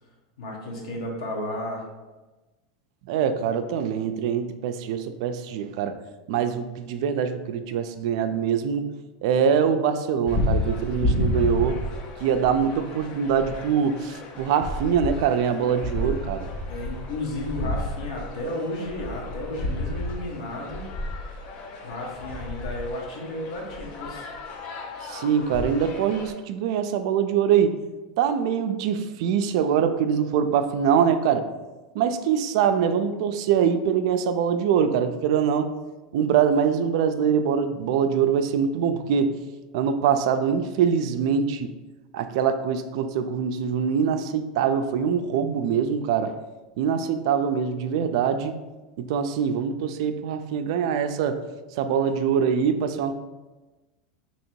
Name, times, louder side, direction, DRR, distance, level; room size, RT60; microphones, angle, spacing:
voice 1, 0.4-1.8 16.7-20.8 21.8-24.3, left 1 dB, 80° left, -1 dB, 1.1 m, -33 dB
voice 2, 3.1-6.0 6.3-8.8 9.2-11.8 12.2-16.5 25.0-27.8 28.2-31.5 31.9-35.7 36.1-39.3 39.7-41.7 42.1-46.4 46.8-48.5 49.0-51.4 51.8-53.1, right 7 dB, 65° right, 9 dB, 0.3 m, -23 dB
sound 1, 10.3-26.3, left 1 dB, 40° left, 0.5 m, -31 dB
2.9 x 2.7 x 4.4 m, 1.2 s
supercardioid pair, 145°, 3 cm